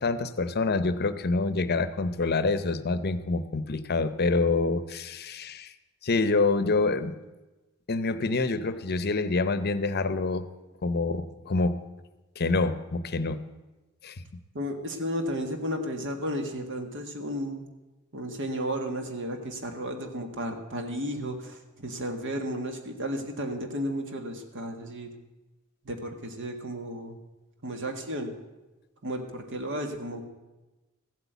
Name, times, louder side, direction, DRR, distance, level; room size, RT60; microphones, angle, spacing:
voice 1, 0.0-5.7 6.0-7.1 7.9-10.5 10.8-11.8 12.4-13.4 14.0-14.2, left 3 dB, 50° left, 13 dB, 0.7 m, -26 dB
voice 2, 14.5-17.7 18.1-25.1 25.8-27.2 27.6-28.3 29.0-30.2, equal, 60° right, 5 dB, 1.8 m, -33 dB
15.0 x 8.2 x 8.1 m, 1.1 s
head